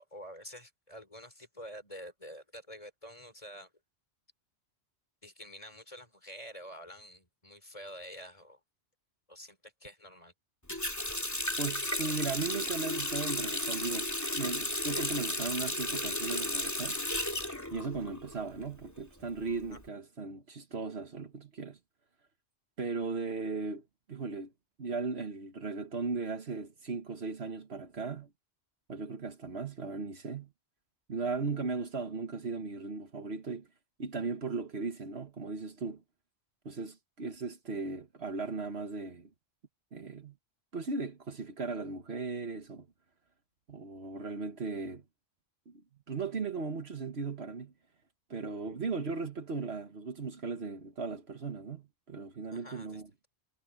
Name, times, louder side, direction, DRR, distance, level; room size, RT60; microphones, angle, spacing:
voice 1, 0.0-3.7 5.2-8.6 9.3-10.3 19.7-19.8 48.6-48.8 52.5-53.0, equal, 30° left, 4.3 m, -48 dB
Water tap faucet, 10.7-18.4 18.7-19.8, left 1 dB, 15° left, 2.7 m, -34 dB
voice 2, 11.6-17.0 17.7-21.8 22.8-23.8 24.1-24.5 24.8-28.3 28.9-30.5 31.1-33.7 34.0-36.0 36.7-39.3 39.9-40.4 40.7-42.9 43.7-45.0 45.7-45.8 46.1-47.7 48.3-53.1, right 4 dB, 65° right, 1.7 m, -37 dB
omnidirectional pair, 1.2 m